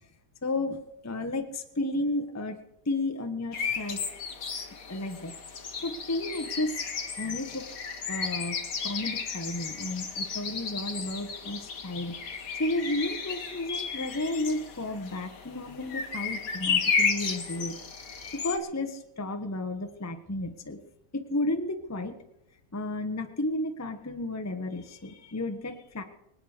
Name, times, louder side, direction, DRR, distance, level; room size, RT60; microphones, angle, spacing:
voice 1, 0.4-2.6 2.8-4.0 4.9-5.3 5.8-7.7 8.1-8.6 8.8-12.2 12.5-17.7 18.3-20.8 21.1-22.1 22.7-26.0, left 2 dB, 10° left, 6 dB, 1.0 m, -32 dB
sound 1, 3.5-18.6, left 5 dB, 55° left, 1.7 m, -33 dB
24.5 x 8.9 x 5.1 m, 0.85 s
omnidirectional pair, 1.8 m